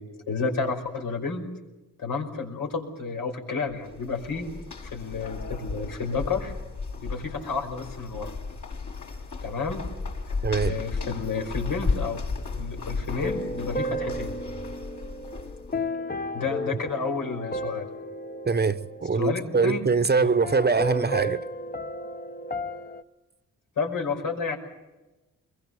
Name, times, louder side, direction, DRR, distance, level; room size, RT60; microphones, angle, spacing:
voice 1, 0.0-1.5 2.0-4.5 4.8-6.6 7.0-8.4 9.4-9.9 10.3-10.4 10.7-14.4 16.3-17.9 19.2-19.9 20.2-20.3 23.8-24.6, left 4 dB, 80° left, 5.5 m, -31 dB
sound 1, 3.7-15.8, left 4 dB, 60° left, 6.0 m, -34 dB
voice 2, 10.4-10.8 18.4-21.4, right 4 dB, 30° right, 1.0 m, -23 dB
sound 2, 13.2-19.9 20.4-23.0, equal, 25° left, 1.1 m, -33 dB
23.5 x 22.0 x 7.1 m
cardioid pair, 95°, 33 cm